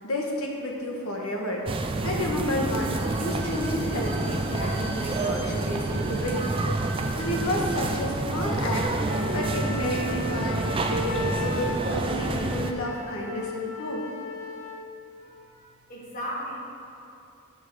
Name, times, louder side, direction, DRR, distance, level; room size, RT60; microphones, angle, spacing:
voice 1, 0.0-6.9 7.1-14.0, left 1 dB, 80° left, -1 dB, 1.3 m, -31 dB
sound 1, 1.7-12.7, right 2 dB, 25° right, 0.4 m, -28 dB
Bowed string instrument, 2.5-8.1 8.4-8.5, right 1 dB, 15° left, 1.0 m, -43 dB
Wind instrument woodwind instrument, 9.1-14.9, left 3 dB, 60° left, 0.6 m, -36 dB
voice 2, 15.2-16.6, equal, 40° left, -5 dB, 1.6 m, -37 dB
7.3 x 5.5 x 6.2 m, 2.6 s
head